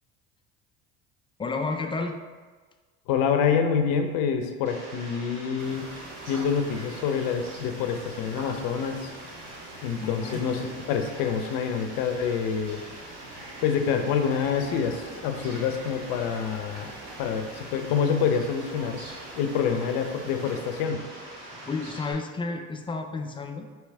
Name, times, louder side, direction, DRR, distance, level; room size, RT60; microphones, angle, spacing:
voice 1, 1.4-2.2 10.0-10.4 21.5-23.7, left 3 dB, 15° left, 5 dB, 0.3 m, -31 dB
voice 2, 3.1-5.9 6.3-9.1 9.8-12.8 13.6-16.9 17.2-19.0 19.4-21.0, left 6 dB, 65° left, 6 dB, 0.6 m, -27 dB
Fowl, 4.6-22.1, right 1 dB, 85° right, 1.4 m, -43 dB
sound 1, 5.6-20.9, right 3 dB, 50° right, 0.8 m, -47 dB
4.7 x 3.1 x 3.2 m, 1.4 s
hypercardioid pair, 80°, 36 cm